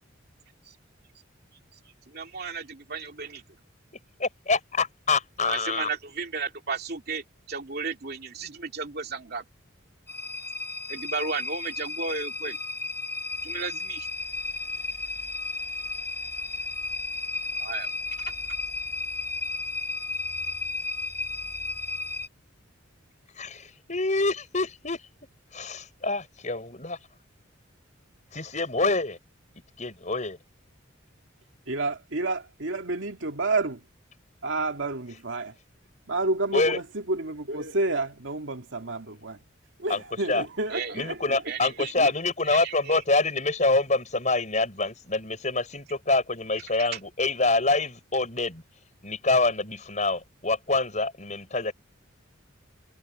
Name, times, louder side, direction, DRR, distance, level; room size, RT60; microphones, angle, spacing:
voice 1, 2.1-3.4 5.4-9.4 10.9-12.6 13.4-14.1 17.6-17.9 40.7-41.0 41.5-41.9 42.4-43.0 46.8-47.0, right 4 dB, 50° right, 2.7 m, -34 dB
voice 2, 4.2-5.9 23.3-25.0 25.5-27.0 28.3-29.2 29.8-30.4 36.5-36.8 39.9-40.0 40.3-40.5 40.9-48.6 49.0-51.7, left 3 dB, 35° left, 6.6 m, -26 dB
sound 1, 10.1-22.3, left 3 dB, 10° left, 1.9 m, -33 dB
voice 3, 31.7-33.8 34.4-35.6 36.1-39.4 39.8-41.4 41.9-42.1, right 2 dB, 70° right, 2.2 m, -30 dB
head